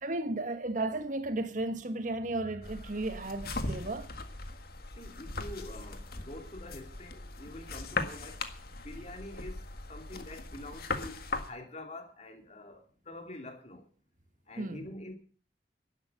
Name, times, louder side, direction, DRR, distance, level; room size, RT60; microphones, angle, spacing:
voice 1, 0.0-4.1 14.6-14.9, right 2 dB, 45° right, 1.5 m, -34 dB
sound 1, 2.6-11.5, left 3 dB, 60° left, 1.7 m, -39 dB
voice 2, 4.9-13.9 14.5-15.1, left 1 dB, 40° left, 2.9 m, -46 dB
12.0 x 11.0 x 8.0 m
head